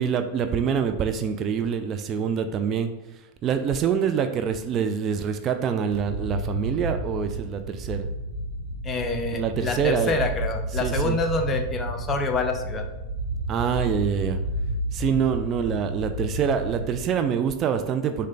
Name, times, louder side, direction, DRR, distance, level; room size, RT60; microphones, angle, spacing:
voice 1, 0.0-8.1 9.3-10.1 10.7-11.2 13.5-14.4 14.9-18.3, right 7 dB, 35° right, 7 dB, 0.3 m, -26 dB
sound 1, 5.9-17.0, right 1 dB, 50° right, 1.0 m, -31 dB
voice 2, 8.8-12.8, left 3 dB, 25° left, 6 dB, 0.6 m, -27 dB
6.2 x 2.2 x 3.8 m, 1.0 s
figure-of-eight pair, 90°, 0 cm